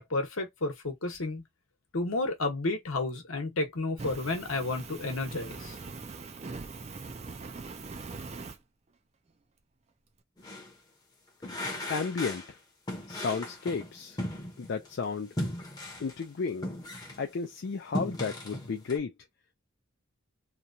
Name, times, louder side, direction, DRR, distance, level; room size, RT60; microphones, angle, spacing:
voice 1, 0.0-1.4 1.9-5.7, left 2 dB, 70° left, 1.0 m, -31 dB
Fire, 4.0-8.6, right 4 dB, 30° right, 0.4 m, -42 dB
sound 1, 10.4-10.7 11.4-12.5 12.9-14.9 15.4-17.3 17.7-19.0, left 1 dB, 20° left, 0.7 m, -37 dB
voice 2, 11.9-12.4 13.1-14.2 14.6-15.3 16.0-16.7 17.2-19.1, left 5 dB, 55° left, 0.4 m, -33 dB
3.0 x 2.2 x 2.6 m
head